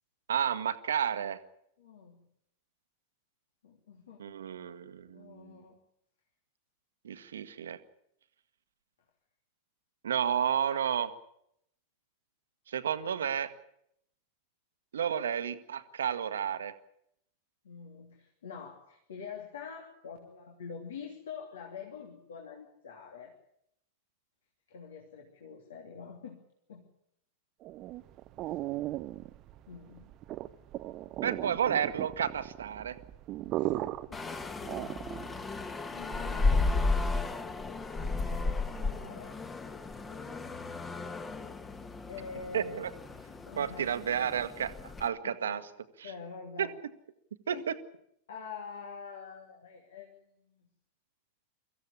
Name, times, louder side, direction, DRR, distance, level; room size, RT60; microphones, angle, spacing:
voice 1, 0.3-1.4 4.2-5.6 7.0-7.8 10.0-11.1 12.7-13.5 14.9-16.7 31.2-33.0 42.5-42.9 43.6-44.7 45.0-45.6 46.6-46.7 47.5-47.7, right 8 dB, 65° right, 12 dB, 1.4 m, -31 dB
voice 2, 1.8-2.3 3.6-4.4 5.1-5.8 17.6-23.3 24.7-26.4 26.7-26.8 28.4-28.6 29.7-30.1 33.5-33.7 35.9-37.6 38.1-39.4 40.1-41.4 42.1-42.9 43.4-43.9 45.2-45.6 46.0-46.7 47.5-47.7 48.3-50.7, left 6 dB, 65° left, 2 dB, 3.1 m, -46 dB
sound 1, 27.6-35.4, right 15 dB, 35° right, 0.9 m, -37 dB
sound 2, 34.1-45.1, left 3 dB, 15° left, 1.7 m, -34 dB
24.5 x 15.5 x 10.0 m, 0.75 s
figure-of-eight pair, 90°, 0 cm